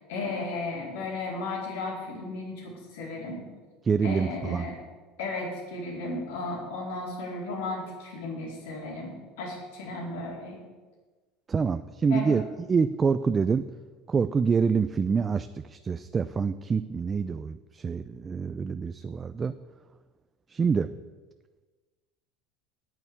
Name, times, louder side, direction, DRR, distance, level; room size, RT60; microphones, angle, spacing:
voice 1, 0.0-3.5 4.0-4.8 5.2-10.6 12.1-12.4, left 3 dB, 85° left, -2 dB, 4.2 m, -35 dB
voice 2, 3.8-4.7 11.5-12.4 12.7-13.6 14.1-19.5 20.5-20.9, right 5 dB, 25° right, 11 dB, 0.4 m, -26 dB
9.2 x 7.9 x 8.5 m, 1.3 s
supercardioid pair, 105°, 0 cm